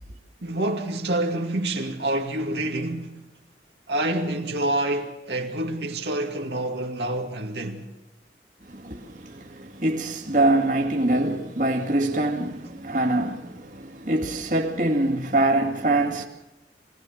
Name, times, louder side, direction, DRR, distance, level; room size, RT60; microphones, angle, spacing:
voice 1, 0.4-3.3 3.9-7.9, right 1 dB, 80° right, 2.3 m, -27 dB
voice 2, 8.7-16.2, right 2 dB, 45° right, 2.3 m, -24 dB
24.0 x 17.5 x 6.4 m
head